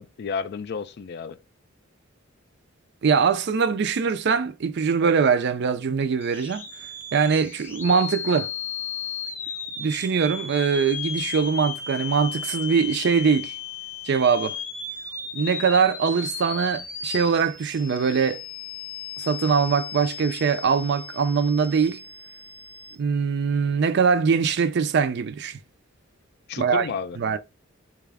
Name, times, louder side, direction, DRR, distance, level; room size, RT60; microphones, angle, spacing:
voice 1, 0.0-1.4 26.5-27.2, left 5 dB, 55° left, 0.4 m, -32 dB
voice 2, 3.0-6.7 7.1-8.5 9.8-13.5 14.1-14.6 15.3-18.4 19.2-22.0 23.0-25.6 26.6-26.9 27.2-27.4, right 6 dB, 55° right, 0.4 m, -22 dB
sound 1, 6.2-23.0, left 5 dB, 10° left, 0.8 m, -35 dB
4.1 x 2.3 x 3.4 m
head